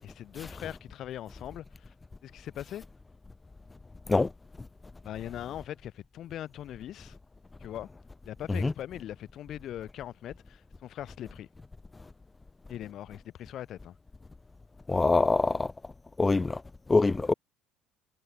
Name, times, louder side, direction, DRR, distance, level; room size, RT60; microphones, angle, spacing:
voice 1, 0.0-1.9 2.2-2.8 5.0-7.2 7.6-7.9 8.2-11.5 12.7-13.9, left 12 dB, 40° left, 4.9 m, -41 dB
voice 2, 14.9-15.7 16.2-16.6 16.9-17.3, left 3 dB, 10° left, 0.4 m, -24 dB
cardioid pair, 165°, 0 cm